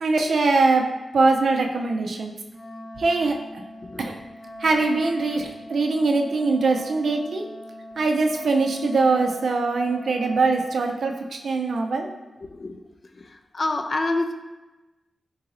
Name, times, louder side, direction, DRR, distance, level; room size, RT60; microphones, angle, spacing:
voice 1, 0.0-0.8 1.1-2.3 3.0-3.6 4.0-4.2 4.6-7.4 8.0-12.1, right 3 dB, 70° right, 3 dB, 0.4 m, -22 dB
Wind instrument woodwind instrument, 2.5-10.9, equal, 30° right, 0.8 m, -42 dB
voice 2, 12.4-12.8 13.2-13.3 13.5-14.4, left 2 dB, 40° left, 6 dB, 0.3 m, -26 dB
3.8 x 2.5 x 4.0 m, 1.1 s
wide cardioid pair, 120°, 0 cm